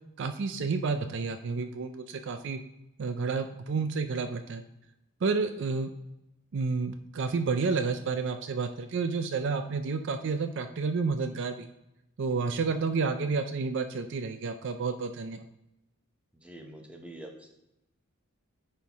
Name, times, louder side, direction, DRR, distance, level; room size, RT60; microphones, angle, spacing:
voice 1, 0.2-2.6 3.0-4.6 5.2-5.9 6.5-11.7 12.2-15.4, right 4 dB, 55° right, 8 dB, 0.4 m, -30 dB
voice 2, 16.3-17.5, right 1 dB, 5° right, 2 dB, 0.8 m, -46 dB
9.4 x 4.5 x 3.5 m, 0.88 s
head